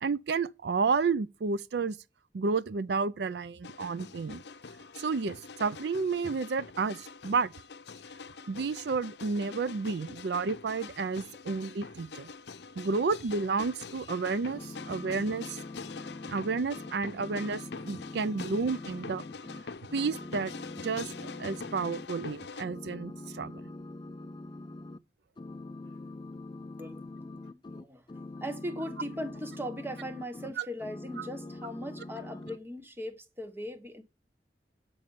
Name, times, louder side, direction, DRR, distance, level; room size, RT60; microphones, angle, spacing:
voice 1, 0.0-2.0 2.3-4.4 5.0-7.5 8.5-12.3 12.8-15.6 16.3-19.2 19.9-20.5 20.8-21.1 21.4-23.6 30.6-30.7 31.2-31.3, right 4 dB, 70° right, 0.5 m, -31 dB
sound 1, 3.6-22.6, left 4 dB, 70° left, 0.7 m, -45 dB
sound 2, 14.5-19.6 19.9-22.3 22.6-25.0 25.4-30.5 30.8-32.6, left 2 dB, 25° left, 0.4 m, -44 dB
voice 2, 26.8-28.0 28.4-34.0, equal, 15° right, 1.1 m, -39 dB
9.2 x 5.5 x 6.9 m
head